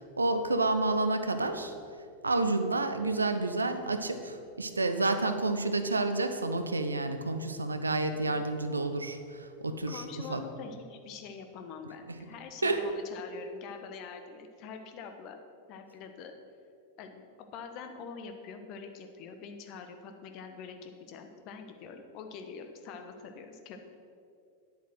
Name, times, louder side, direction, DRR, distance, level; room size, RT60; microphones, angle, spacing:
voice 1, 0.2-1.7 2.2-9.2 9.6-10.0 10.3-10.4 12.6-12.8, right 2 dB, 80° right, 9 dB, 0.8 m, -29 dB
voice 2, 9.9-15.4 15.7-16.4 17.0-23.8, left 5 dB, 40° left, 6 dB, 1.2 m, -45 dB
10.5 x 8.3 x 6.2 m, 2.5 s
figure-of-eight pair, 90°, 0 cm